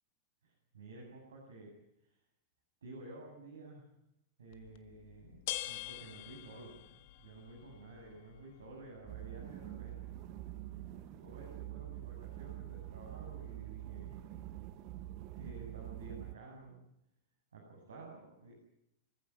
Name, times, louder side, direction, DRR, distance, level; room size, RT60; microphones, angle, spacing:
voice 1, 0.4-1.7 2.8-3.8 4.4-10.2 11.2-14.2 15.3-16.8 17.5-18.5, right 2 dB, 70° right, -1 dB, 7.5 m, -52 dB
sound 1, 4.5-16.0, left 15 dB, 50° left, 1.5 m, -50 dB
sound 2, 9.1-16.3, right 17 dB, 40° right, 0.9 m, -46 dB
25.0 x 15.5 x 9.5 m, 0.81 s
figure-of-eight pair, 90°, 0 cm